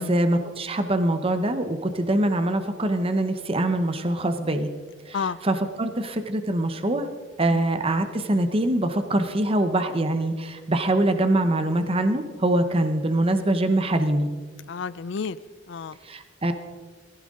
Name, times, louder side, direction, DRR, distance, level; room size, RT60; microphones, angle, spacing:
voice 1, 0.0-4.7 5.1-5.2 5.4-7.1 7.4-14.3 16.0-16.5, right 1 dB, 30° right, 8 dB, 0.9 m, -23 dB
voice 2, 14.7-15.4 15.7-16.0, left 5 dB, 65° left, 17 dB, 0.5 m, -31 dB
21.5 x 15.5 x 3.8 m, 1.5 s
head